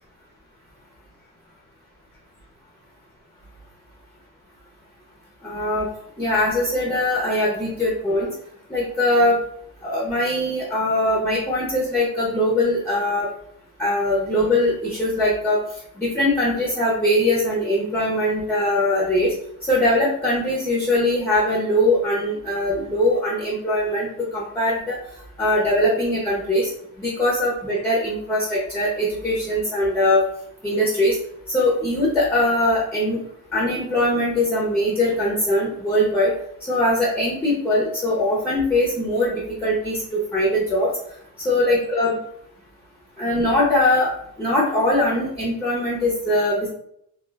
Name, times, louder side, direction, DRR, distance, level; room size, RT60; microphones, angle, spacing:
voice 1, 5.4-5.9 6.2-8.3 8.7-9.4 9.8-13.3 13.8-15.6 16.0-19.3 19.7-25.0 25.4-26.7 27.0-30.2 30.6-31.1 31.5-33.2 33.5-36.3 36.7-40.9 41.4-42.2 43.2-44.1 44.4-46.7, left 1 dB, 5° left, -4 dB, 0.5 m, -21 dB
2.3 x 2.2 x 3.2 m, 0.70 s
cardioid pair, 140°, 37 cm